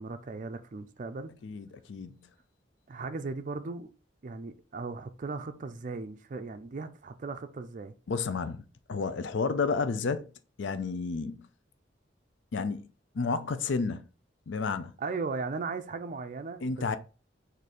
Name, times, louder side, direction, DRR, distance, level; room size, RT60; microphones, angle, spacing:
voice 1, 0.0-1.3 2.9-3.9 4.2-7.9 15.0-16.6, right 4 dB, 40° right, 0.4 m, -37 dB
voice 2, 1.4-2.2 8.1-10.3 10.6-11.5 12.5-12.9 13.1-14.1 14.5-15.0 16.6-17.0, left 4 dB, 70° left, 0.5 m, -31 dB
4.2 x 2.6 x 4.8 m
head